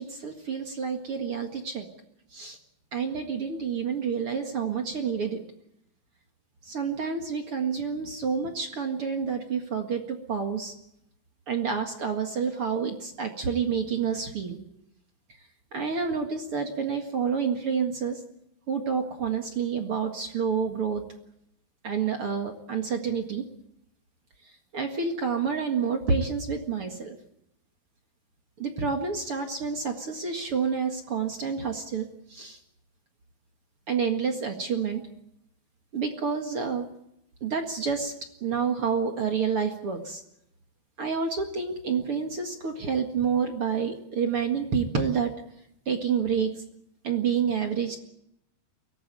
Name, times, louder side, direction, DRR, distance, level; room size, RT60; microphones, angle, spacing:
voice 1, 0.0-1.9 2.3-2.6 2.9-5.4 6.6-10.7 11.5-14.6 15.7-18.2 18.7-21.0 21.8-23.5 24.7-27.2 28.6-32.6 33.9-35.1 35.9-36.9 37.4-38.1 38.4-40.2 41.0-45.3 45.9-46.5 47.0-48.0, right 6 dB, 50° right, 4 dB, 1.7 m, -28 dB
23.0 x 18.5 x 9.1 m, 0.79 s
omnidirectional pair, 5.2 m